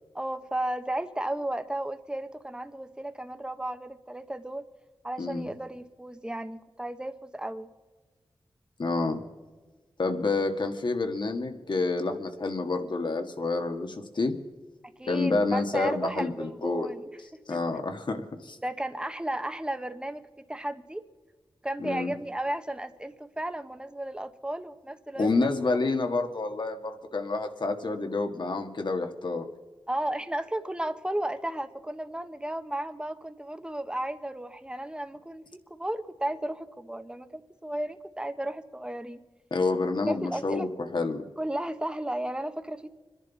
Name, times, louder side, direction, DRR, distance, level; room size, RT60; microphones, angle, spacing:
voice 1, 0.1-4.7 5.0-7.7 14.8-17.0 17.5-17.6 18.6-21.0 21.6-25.5 29.9-39.2 40.1-40.7 41.4-42.9, right 1 dB, 10° right, 9 dB, 1.1 m, -34 dB
voice 2, 8.8-9.2 10.0-14.3 15.1-16.9 17.5-18.6 21.8-22.1 25.2-29.5 39.5-41.2, left 3 dB, 55° left, 5 dB, 1.7 m, -28 dB
26.0 x 11.0 x 4.1 m, 1.3 s
cardioid pair, 60°, 9 cm